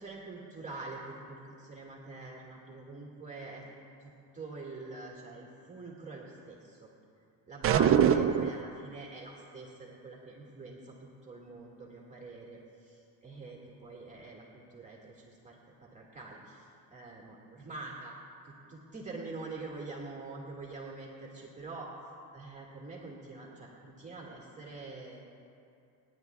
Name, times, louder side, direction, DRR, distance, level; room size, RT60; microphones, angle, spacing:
voice 1, 0.0-3.7 4.0-6.9 7.5-18.1 18.5-21.9 22.3-25.2, right 3 dB, 15° right, -3 dB, 1.9 m, -45 dB
sound 1, 7.6-8.7, right 9 dB, 35° right, 0.4 m, -23 dB
28.5 x 10.5 x 2.4 m, 2.6 s
cardioid pair, 115°, 43 cm